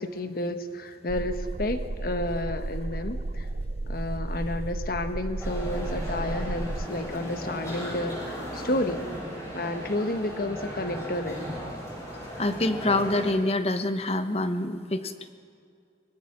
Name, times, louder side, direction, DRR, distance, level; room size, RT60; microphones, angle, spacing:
voice 1, 0.0-3.5 3.9-9.0 9.5-11.6, left 1 dB, 55° left, 9 dB, 1.2 m, -31 dB
sound 1, 1.1-6.9, right 2 dB, 40° right, 0.5 m, -33 dB
sound 2, 5.4-13.3, equal, 15° left, 6.5 m, -37 dB
voice 2, 12.4-15.3, left 2 dB, 35° left, 9 dB, 1.1 m, -26 dB
24.0 x 21.0 x 6.0 m, 2.4 s
head